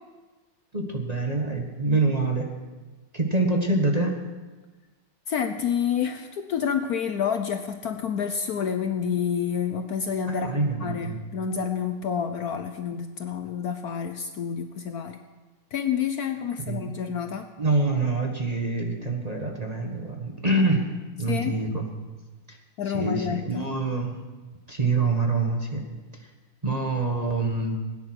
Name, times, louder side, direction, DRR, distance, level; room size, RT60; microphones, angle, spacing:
voice 1, 0.7-2.5 3.1-4.1 10.3-11.2 16.6-16.8 17.6-20.9 21.2-21.9 22.5-22.6 22.9-24.2 24.7-25.8 26.6-27.8, right 3 dB, 25° right, 2 dB, 1.3 m, -25 dB
voice 2, 5.3-10.5 10.8-15.2 15.7-17.5 21.3-21.6 22.8-23.7, left 7 dB, 60° left, 7 dB, 1.1 m, -28 dB
18.0 x 9.9 x 6.2 m, 1.3 s
omnidirectional pair, 2.0 m